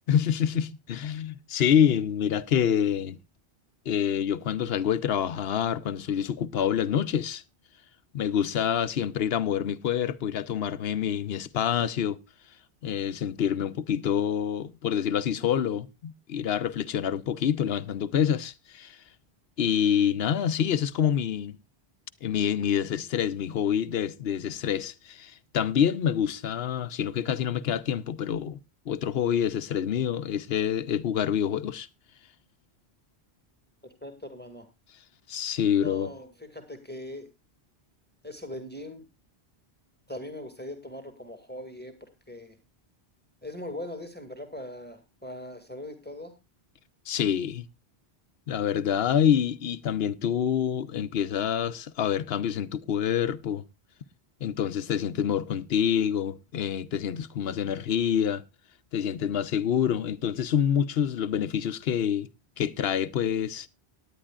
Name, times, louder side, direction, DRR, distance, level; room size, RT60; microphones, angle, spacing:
voice 1, 0.1-3.2 3.9-7.4 8.1-12.2 12.8-19.0 19.6-21.6 22.2-28.6 28.9-31.9 35.3-36.1 47.1-47.6 48.5-53.6 54.4-58.4 58.9-62.3 62.6-63.7, left 9 dB, 70° left, 1.0 m, -27 dB
voice 2, 34.0-34.7 35.8-37.3 38.2-39.0 40.1-42.6 43.4-46.3, left 1 dB, 10° left, 2.1 m, -40 dB
18.5 x 10.0 x 2.4 m
omnidirectional pair, 1.1 m